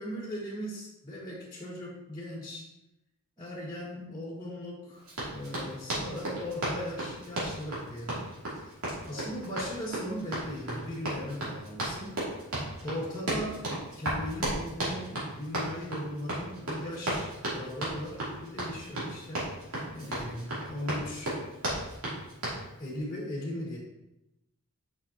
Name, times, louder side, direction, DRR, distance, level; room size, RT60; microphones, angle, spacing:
voice 1, 0.0-2.7 3.4-5.0 5.3-8.6 9.0-12.2 12.8-13.6 13.9-19.5 19.9-21.4 22.8-23.8, left 1 dB, 15° left, -5 dB, 1.8 m, -38 dB
Run, 5.1-22.6, right 1 dB, 80° right, 2.7 m, -34 dB
7.7 x 6.1 x 2.9 m, 0.90 s
head